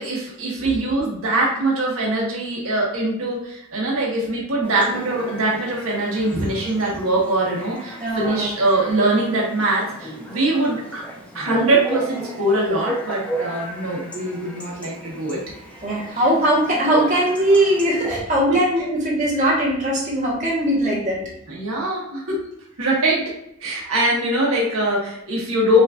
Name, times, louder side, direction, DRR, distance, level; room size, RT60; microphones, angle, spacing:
voice 1, 0.0-11.0 11.3-15.5 16.1-16.2 18.5-18.6 21.5-22.4 22.8-23.3 23.6-25.8, right 1 dB, 75° right, -4 dB, 1.1 m, -22 dB
Chatter / Bark / Livestock farm animals working animals, 4.6-18.2, right 1 dB, 5° left, 0.7 m, -34 dB
voice 2, 8.0-8.5 15.8-21.2, right 1 dB, 35° right, -6 dB, 1.2 m, -20 dB
6.1 x 2.5 x 2.4 m, 0.77 s
head